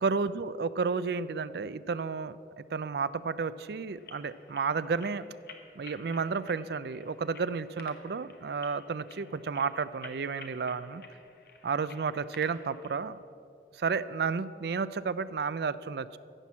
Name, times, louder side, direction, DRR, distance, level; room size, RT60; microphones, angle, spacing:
voice 1, 0.0-5.3 5.8-11.0 11.6-13.2 13.8-16.2, right 5 dB, 65° right, 16 dB, 0.4 m, -32 dB
sound 1, 3.9-13.0, left 4 dB, 55° left, 1.1 m, -53 dB
15.0 x 6.0 x 7.3 m, 2.6 s
head